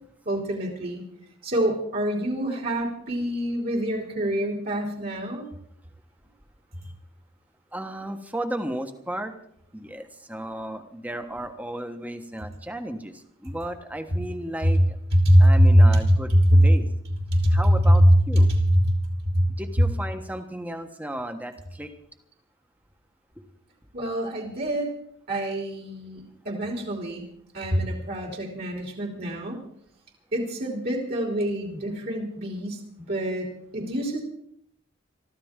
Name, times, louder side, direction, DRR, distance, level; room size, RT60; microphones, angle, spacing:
voice 1, 0.2-1.0 1.4-5.4 14.6-14.7 15.1-16.0 16.3-16.7 17.3-17.6 18.0-18.8 19.3-19.4 23.9-24.9 25.3-27.3 27.5-29.6 30.3-33.5 33.7-34.2, equal, 50° right, 1 dB, 3.2 m, -23 dB
voice 2, 7.7-9.3 9.7-14.8 15.4-16.3 16.6-16.9 17.5-18.5 19.6-21.9, right 1 dB, 10° right, 7 dB, 1.3 m, -34 dB
23.5 x 14.0 x 3.7 m, 0.69 s
head